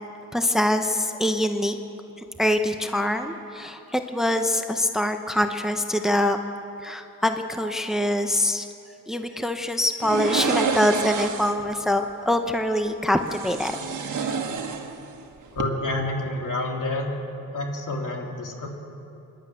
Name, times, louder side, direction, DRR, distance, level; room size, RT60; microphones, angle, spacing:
voice 1, 0.3-1.8 2.2-6.4 6.8-8.7 9.1-13.8 14.1-14.3, left 1 dB, ahead, 6 dB, 0.9 m, -24 dB
sound 1, 10.0-11.7 13.2-15.2 15.5-15.6, right 5 dB, 65° right, 1.6 m, -28 dB
voice 2, 15.5-17.1 17.5-18.7, left 2 dB, 70° left, 1 dB, 3.1 m, -28 dB
25.0 x 11.5 x 9.1 m, 2.9 s
wide cardioid pair, 125°, 32 cm